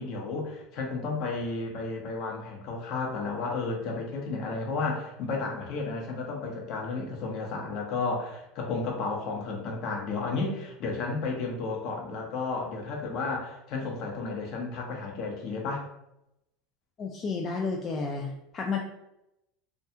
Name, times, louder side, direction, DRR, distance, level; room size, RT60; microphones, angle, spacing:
voice 1, 0.0-15.8, left 3 dB, 55° left, 0 dB, 0.7 m, -32 dB
voice 2, 17.0-18.8, left 4 dB, 35° left, 0 dB, 0.3 m, -31 dB
2.3 x 2.3 x 2.7 m, 0.85 s
supercardioid pair, 105°, 0 cm